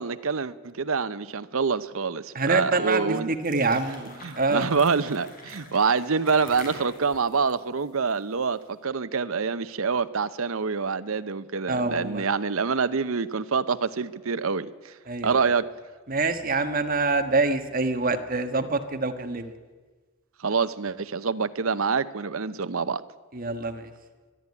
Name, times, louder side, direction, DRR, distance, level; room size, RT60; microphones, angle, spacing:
voice 1, 0.0-3.3 4.2-14.9 15.2-15.7 20.4-23.0, right 5 dB, 80° right, 0.8 m, -26 dB
voice 2, 2.3-4.8 11.7-12.3 15.1-15.4 16.1-19.5 23.3-23.9, right 3 dB, 40° right, 1.5 m, -26 dB
sound 1, 3.3-8.6, left 2 dB, 45° left, 4.7 m, -46 dB
23.5 x 11.5 x 9.6 m
head